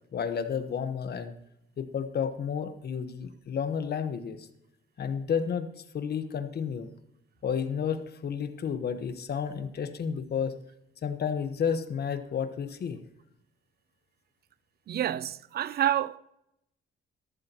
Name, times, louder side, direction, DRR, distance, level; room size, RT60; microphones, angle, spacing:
voice 1, 0.1-1.3 1.8-4.5 5.0-5.7 5.9-6.9 7.4-10.5 11.0-13.0, left 7 dB, 55° left, 1.2 m, -31 dB
voice 2, 14.9-16.2, right 11 dB, 50° right, 0.5 m, -28 dB
13.5 x 12.5 x 3.0 m
cardioid pair, 90°, 20 cm